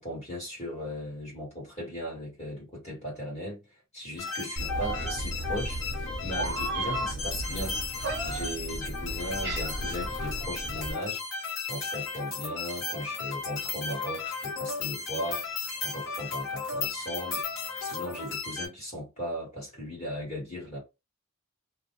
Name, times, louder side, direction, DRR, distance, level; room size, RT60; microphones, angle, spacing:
voice 1, 0.0-3.6 3.9-5.8 6.2-7.7 8.2-11.2 11.7-15.4 15.8-17.4 17.8-20.8, equal, 30° left, 1.5 m, -37 dB
sound 1, 4.2-18.7, left 5 dB, 60° left, 1.0 m, -35 dB
Meow, 4.6-10.9, right 2 dB, 55° right, 0.7 m, -34 dB
2.5 x 2.2 x 3.0 m
head